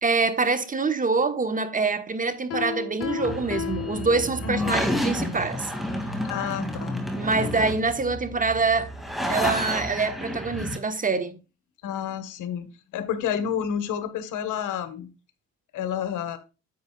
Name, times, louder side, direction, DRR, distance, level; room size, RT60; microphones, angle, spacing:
voice 1, 0.0-5.7 7.2-8.9 9.3-11.4, right 4 dB, 25° right, 1.2 m, -25 dB
Piano, 2.5-4.8, left 8 dB, 50° left, 1.0 m, -33 dB
sound 1, 3.0-10.8, equal, ahead, 2.3 m, -30 dB
voice 2, 4.4-4.7 6.2-7.1 11.8-15.1 15.7-16.4, left 8 dB, 85° left, 1.3 m, -30 dB
10.0 x 7.9 x 2.3 m
cardioid pair, 90°, 30 cm